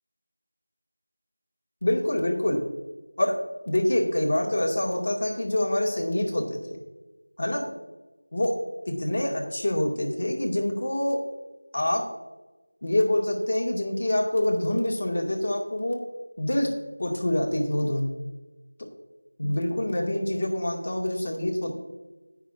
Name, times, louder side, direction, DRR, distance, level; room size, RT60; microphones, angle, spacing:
voice 1, 1.8-2.6 3.2-3.4 3.7-6.8 7.4-7.7 8.3-8.6 8.9-11.2 11.7-12.0 12.8-16.0 16.4-16.7 17.0-18.1 18.8-18.9 19.4-21.8, left 1 dB, 40° left, -1 dB, 1.9 m, -26 dB
18.5 x 6.2 x 2.6 m, 1.1 s
figure-of-eight pair, 175°, 0 cm